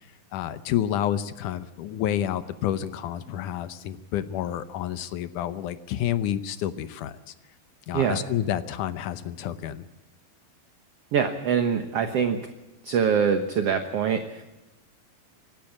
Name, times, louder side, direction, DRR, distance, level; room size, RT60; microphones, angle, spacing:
voice 1, 0.3-7.3 7.9-9.9, left 11 dB, 75° left, 13 dB, 2.1 m, -29 dB
voice 2, 11.1-12.4 12.8-14.4, right 7 dB, 65° right, 8 dB, 1.6 m, -24 dB
26.0 x 12.0 x 8.6 m, 1.0 s
omnidirectional pair, 4.2 m